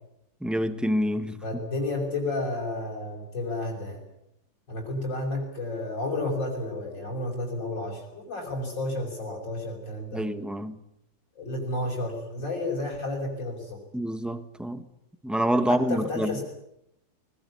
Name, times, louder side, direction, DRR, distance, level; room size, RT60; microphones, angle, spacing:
voice 1, 0.4-1.4 10.1-10.8 13.9-14.8 15.2-16.4, equal, ahead, 10 dB, 1.1 m, -27 dB
voice 2, 1.4-4.0 4.7-10.3 11.4-13.8 15.7-16.4, left 2 dB, 75° left, -5 dB, 6.2 m, -31 dB
21.0 x 20.5 x 9.7 m, 0.81 s
omnidirectional pair, 2.0 m